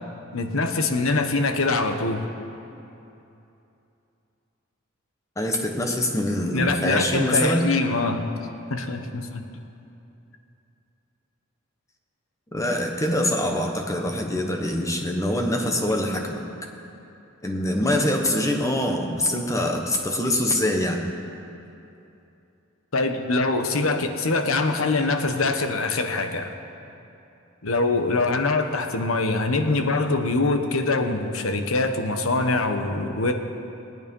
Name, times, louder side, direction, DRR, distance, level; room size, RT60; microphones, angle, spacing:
voice 1, 0.3-2.3 6.5-8.3 8.7-9.5 22.9-26.6 27.6-33.3, left 3 dB, 80° left, 6 dB, 1.1 m, -24 dB
voice 2, 5.4-7.7 12.5-16.4 17.4-21.0, left 1 dB, 15° left, 2 dB, 1.2 m, -24 dB
19.5 x 9.4 x 5.4 m, 2.8 s
head